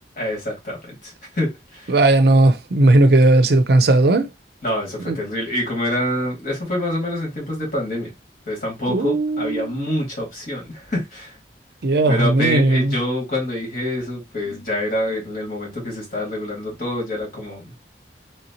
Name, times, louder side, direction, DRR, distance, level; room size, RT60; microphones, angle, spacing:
voice 1, 0.2-1.9 4.6-8.1 8.5-11.4 12.1-17.7, left 1 dB, 50° left, 1.9 m, -26 dB
voice 2, 1.9-4.3 5.0-5.2 8.9-9.9 11.8-13.0, right 2 dB, 60° right, 0.5 m, -16 dB
3.2 x 2.9 x 2.8 m
head